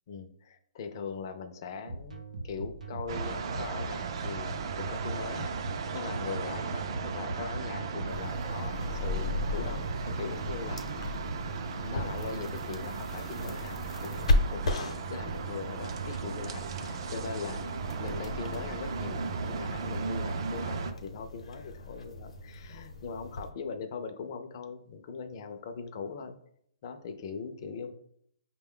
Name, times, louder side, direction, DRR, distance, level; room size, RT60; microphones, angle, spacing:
voice 1, 0.1-11.1 11.5-26.3 26.8-27.9, left 5 dB, 35° left, 7 dB, 0.4 m, -41 dB
sound 1, 1.9-20.4, right 3 dB, 90° right, 0.7 m, -43 dB
sound 2, 3.1-20.9, right 5 dB, 45° right, 0.4 m, -36 dB
sound 3, 8.1-23.5, left 2 dB, 70° left, 0.7 m, -36 dB
5.2 x 2.2 x 3.6 m, 0.69 s
hypercardioid pair, 160°, 4 cm